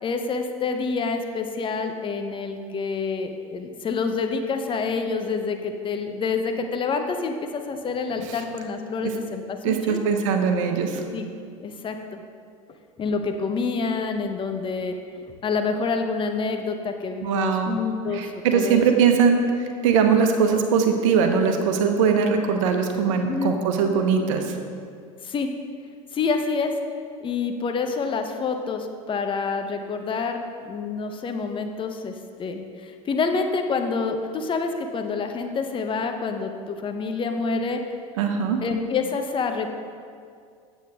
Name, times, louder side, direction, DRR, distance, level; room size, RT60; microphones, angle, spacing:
voice 1, 0.0-10.0 11.1-11.3 11.6-12.2 13.0-18.8 23.3-23.5 25.2-25.5 26.1-26.7 27.2-37.8 38.6-39.7, left 4 dB, 30° left, 6 dB, 0.8 m, -27 dB
voice 2, 9.6-11.0 17.2-17.8 18.1-24.6 38.2-38.6, right 6 dB, 70° right, 5 dB, 1.0 m, -21 dB
9.0 x 8.1 x 3.5 m, 2.2 s
hypercardioid pair, 85°, 17 cm